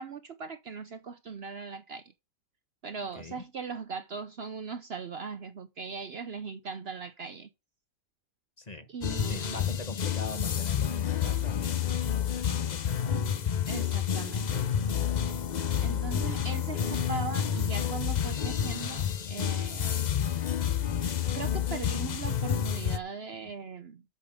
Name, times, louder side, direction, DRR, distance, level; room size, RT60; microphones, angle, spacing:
voice 1, 0.0-2.0 2.8-7.5 8.9-9.6 13.7-15.0 15.8-20.1 21.3-24.0, right 5 dB, 55° right, 0.9 m, -39 dB
voice 2, 8.6-8.9 9.3-13.2, left 3 dB, 30° left, 1.3 m, -42 dB
sound 1, 9.0-23.0, left 8 dB, 50° left, 0.5 m, -29 dB
8.3 x 7.0 x 6.4 m
omnidirectional pair, 1.5 m